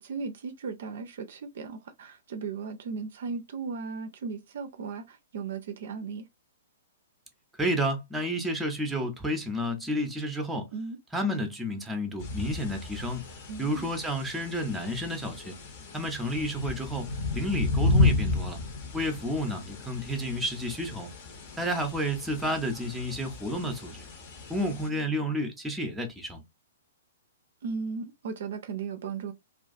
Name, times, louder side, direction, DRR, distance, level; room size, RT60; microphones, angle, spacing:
voice 1, 0.0-6.2 10.7-11.0 13.5-13.9 27.6-29.3, right 5 dB, 55° right, 0.4 m, -36 dB
voice 2, 7.6-10.7 11.1-13.2 13.6-15.6 15.9-18.6 18.9-21.1 21.6-24.1 24.5-26.4, equal, 5° right, 0.6 m, -31 dB
sound 1, 12.2-24.9, left 2 dB, 40° left, 0.7 m, -32 dB
2.4 x 2.3 x 2.5 m
figure-of-eight pair, 115°, 0 cm